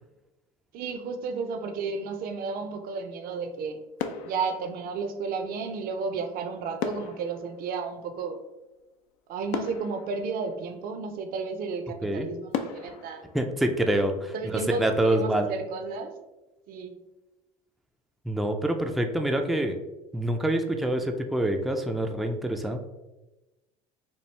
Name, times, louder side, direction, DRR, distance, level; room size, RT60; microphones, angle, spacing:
voice 1, 0.7-3.8 4.2-8.4 9.3-13.3 14.3-16.1 16.7-17.0, right 4 dB, 55° right, 7 dB, 0.6 m, -32 dB
sound 1, 3.3-3.7 4.0-5.4 6.8-8.7 9.1-9.2 9.5-11.1 11.6-11.7 12.5-14.4 14.7-15.0, left 7 dB, 65° left, 0.5 m, -37 dB
voice 2, 13.3-15.5 18.3-19.8 20.1-22.8, right 1 dB, ahead, 4 dB, 0.4 m, -26 dB
4.5 x 2.3 x 3.2 m, 1.0 s
hypercardioid pair, 75°, 19 cm